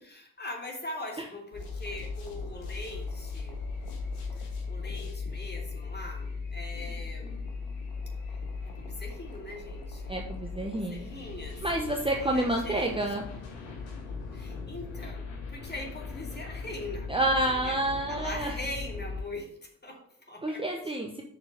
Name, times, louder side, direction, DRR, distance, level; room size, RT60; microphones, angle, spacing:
voice 1, 0.0-3.6 4.3-7.4 8.3-10.1 10.4-13.0 14.3-17.1 17.5-20.6, left 1 dB, 20° left, 1 dB, 2.5 m, -42 dB
sound 1, 1.5-19.2, left 4 dB, 80° left, 1.7 m, -38 dB
voice 2, 10.1-11.1 11.6-13.2 17.1-18.5 20.4-21.2, right 1 dB, 10° right, 1 dB, 1.1 m, -29 dB
6.4 x 4.7 x 6.5 m, 0.70 s
hypercardioid pair, 45°, 46 cm